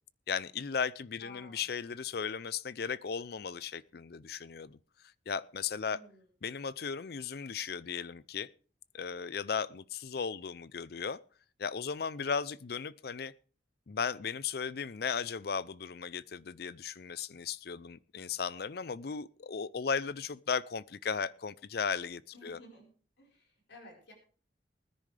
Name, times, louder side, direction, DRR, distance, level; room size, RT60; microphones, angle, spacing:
voice 1, 0.3-4.8 5.3-6.0 6.4-8.5 8.9-11.2 11.6-13.3 13.9-22.6, left 6 dB, 55° left, 0.5 m, -36 dB
voice 2, 1.2-1.6 5.9-6.3 22.3-22.9 23.2-24.1, left 1 dB, 70° left, 4.6 m, -54 dB
20.0 x 10.0 x 3.3 m
head